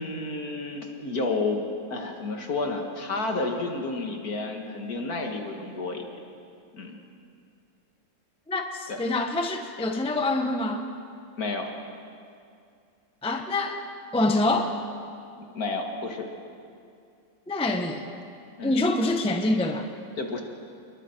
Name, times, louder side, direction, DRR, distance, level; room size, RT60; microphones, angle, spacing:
voice 1, 0.0-1.6 1.9-6.2 6.7-7.0 8.9-9.0 11.4-11.7 15.4-16.3 18.6-18.8 20.2-20.4, left 3 dB, 55° left, 3 dB, 2.3 m, -31 dB
voice 2, 8.5-10.9 13.2-13.8 14.1-14.8 17.5-18.0 18.6-19.9, left 2 dB, 5° left, 4 dB, 0.8 m, -25 dB
27.5 x 22.0 x 4.6 m, 2.4 s
omnidirectional pair, 1.9 m